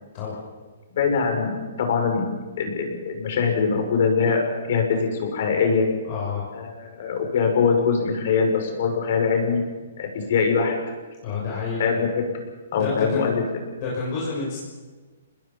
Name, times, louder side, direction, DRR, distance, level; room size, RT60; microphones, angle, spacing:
voice 1, 1.0-5.9 6.5-9.6 10.0-10.7 11.3-11.5 11.8-12.2 12.7-13.4, left 5 dB, 50° left, 3 dB, 6.2 m, -23 dB
voice 2, 6.0-6.4 11.2-11.8 12.7-13.3 13.8-14.6, left 4 dB, 35° left, -5 dB, 6.6 m, -29 dB
27.5 x 20.5 x 5.6 m, 1.3 s
hypercardioid pair, 165°, 0 cm